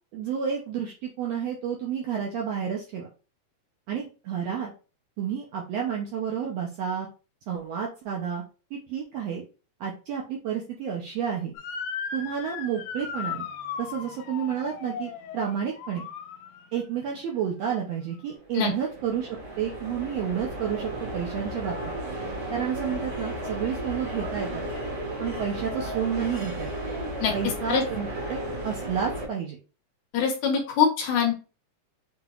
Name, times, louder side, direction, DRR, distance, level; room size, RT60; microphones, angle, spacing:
voice 1, 0.1-3.1 3.9-4.7 5.2-7.1 7.5-8.4 8.7-9.4 9.8-11.6 12.1-13.5 13.8-16.1 16.7-21.8 22.5-24.6 25.2-26.7 27.3-29.6, right 8 dB, 75° right, -1 dB, 1.5 m, -30 dB
Motor vehicle (road) / Siren, 11.6-16.8, left 6 dB, 90° left, 2.1 m, -37 dB
sound 1, 18.4-29.2, right 1 dB, 50° right, 0.9 m, -34 dB
voice 2, 30.1-31.3, left 7 dB, 70° left, 2 dB, 1.9 m, -23 dB
5.9 x 2.8 x 2.3 m, 0.33 s
omnidirectional pair, 3.6 m